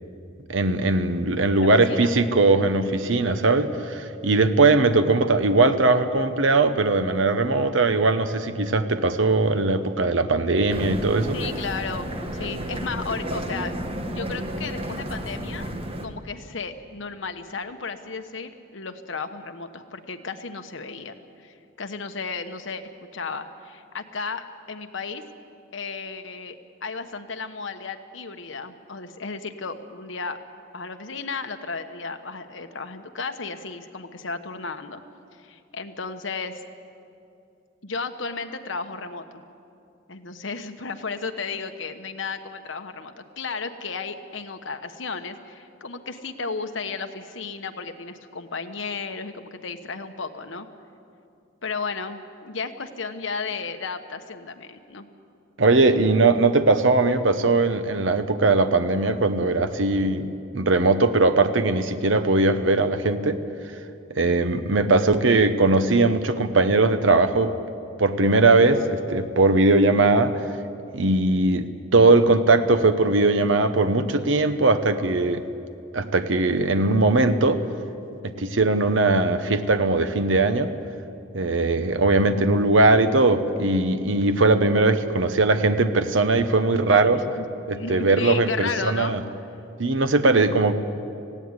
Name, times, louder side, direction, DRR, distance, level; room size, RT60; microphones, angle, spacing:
voice 1, 0.5-11.4 55.6-63.4 64.2-67.5 68.0-70.4 70.9-75.4 75.9-77.6 78.2-80.7 81.3-87.2 87.7-89.2 89.8-90.7, right 3 dB, 75° right, 10 dB, 1.0 m, -20 dB
voice 2, 1.5-2.1 11.3-13.7 14.1-15.7 16.0-25.2 25.7-30.4 30.7-35.0 35.4-36.6 37.8-39.4 40.1-50.7 51.6-55.1 87.2-87.4 87.7-89.2, left 4 dB, 75° left, 7 dB, 1.2 m, -34 dB
sound 1, 10.7-16.1, equal, 30° right, 1.3 m, -32 dB
18.0 x 16.0 x 9.7 m, 2.6 s
head